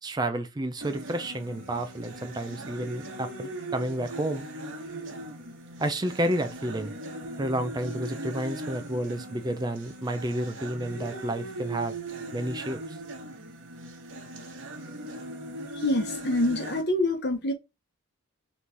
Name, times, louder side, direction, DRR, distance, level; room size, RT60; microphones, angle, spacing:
voice 1, 0.0-4.5 5.8-6.9 7.4-12.0 12.3-13.0, right 1 dB, 20° right, 0.3 m, -30 dB
sound 1, 0.8-16.8, right 1 dB, 55° right, 1.2 m, -39 dB
voice 2, 15.7-17.5, left 1 dB, 50° left, 0.9 m, -26 dB
4.1 x 3.1 x 3.3 m
head